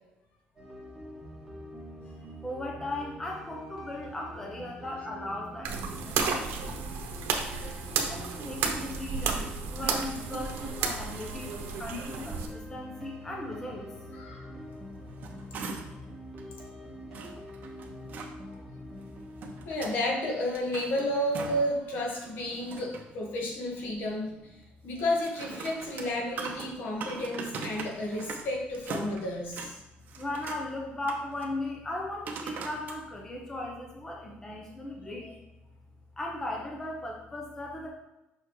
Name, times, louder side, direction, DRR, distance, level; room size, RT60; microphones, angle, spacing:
sound 1, 0.6-19.6, equal, 5° right, 1.7 m, -45 dB
voice 1, 2.4-6.5 8.1-9.4 9.7-11.5 11.8-12.4 12.7-13.8 30.2-35.3 36.2-37.9, left 1 dB, 15° left, 0 dB, 0.9 m, -37 dB
sound 2, 5.6-12.5, right 5 dB, 80° right, 0.9 m, -32 dB
voice 2, 14.2-14.5 19.6-24.3 24.8-29.7, left 1 dB, 65° left, 0 dB, 1.6 m, -31 dB
sound 3, 14.9-16.1 16.4-16.5 17.1-18.3 19.1-20.0 20.4-21.8 22.1-23.1 25.1-28.5 28.7-29.7 30.1-30.6 31.0-31.5 32.3-33.0 33.6-33.7, right 4 dB, 50° right, 0.9 m, -41 dB
6.7 x 5.6 x 3.2 m, 0.95 s
cardioid pair, 145°, 4 cm